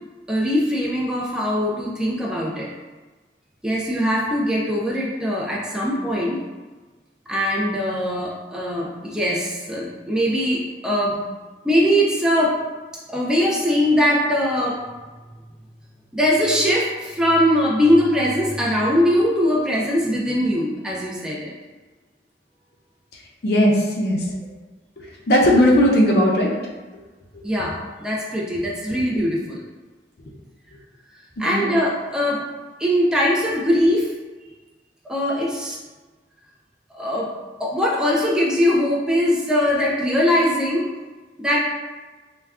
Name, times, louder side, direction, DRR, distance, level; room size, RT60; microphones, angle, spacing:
voice 1, 0.3-2.7 3.6-6.4 7.3-11.2 11.6-12.6 13.1-14.8 16.1-21.5 27.4-29.6 31.4-32.4 32.8-34.1 35.1-35.8 36.9-37.3 37.6-40.8 41.4-41.6, equal, 5° right, -4 dB, 0.3 m, -21 dB
voice 2, 23.4-24.3 25.0-26.5 27.3-27.4 28.9-29.0 31.4-31.7, equal, 60° left, -2 dB, 0.5 m, -18 dB
2.3 x 2.2 x 3.5 m, 1.3 s
head